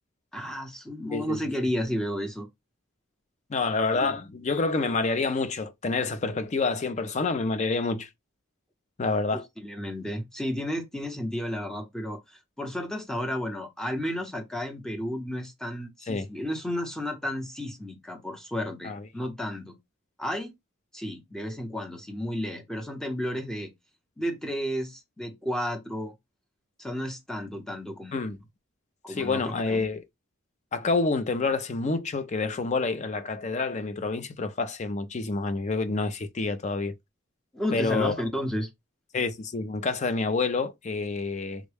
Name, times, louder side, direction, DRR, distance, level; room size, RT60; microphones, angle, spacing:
voice 1, 0.3-2.5 9.3-19.7 20.2-20.5 20.9-23.7 24.2-26.1 26.8-28.2 29.0-29.8 37.5-38.7, equal, 5° left, 0.7 m, -32 dB
voice 2, 3.5-8.1 9.0-9.4 16.1-16.3 18.8-19.0 28.1-28.4 29.1-30.0 30.7-36.9 37.7-38.1 39.1-41.6, left 3 dB, 35° left, 0.4 m, -28 dB
3.5 x 2.1 x 3.3 m
head